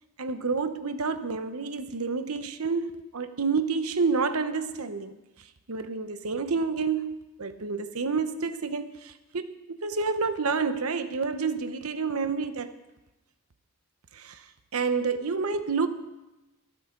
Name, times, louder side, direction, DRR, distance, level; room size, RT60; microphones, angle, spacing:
voice 1, 0.2-5.1 5.7-12.7 14.1-14.4 14.7-15.9, right 4 dB, 80° right, 10 dB, 1.0 m, -29 dB
24.5 x 8.6 x 3.9 m, 1.0 s
head